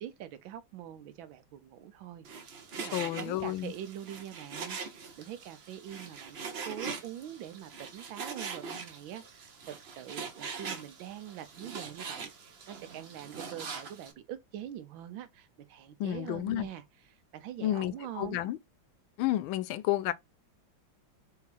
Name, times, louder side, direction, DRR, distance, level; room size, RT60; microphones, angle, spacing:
voice 1, 0.0-6.4 6.7-16.8 17.3-18.4, right 11 dB, 85° right, 1.4 m, -44 dB
Frying (food), 2.2-14.1, right 5 dB, 55° right, 0.7 m, -42 dB
voice 2, 2.9-3.7 16.0-16.7 17.6-18.6 19.2-20.1, left 14 dB, 85° left, 1.4 m, -31 dB
4.5 x 3.5 x 3.3 m
omnidirectional pair, 2.2 m